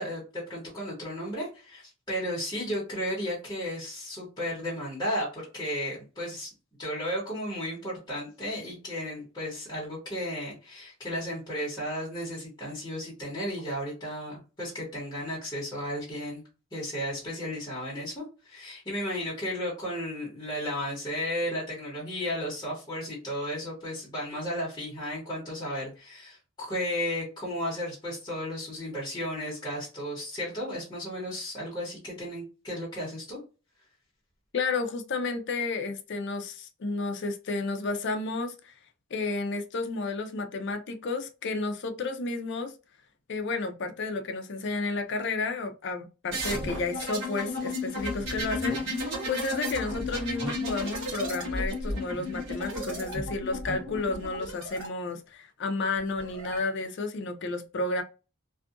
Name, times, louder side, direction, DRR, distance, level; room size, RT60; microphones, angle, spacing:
voice 1, 0.0-6.5 6.8-16.4 16.7-33.4, equal, 20° left, -6 dB, 1.0 m, -34 dB
voice 2, 34.5-38.7 39.1-42.7 43.3-58.0, left 3 dB, 55° left, 5 dB, 0.5 m, -32 dB
sound 1, 46.3-54.9 56.0-56.6, left 1 dB, 60° right, 1.0 m, -33 dB
2.6 x 2.4 x 2.4 m, 0.32 s
head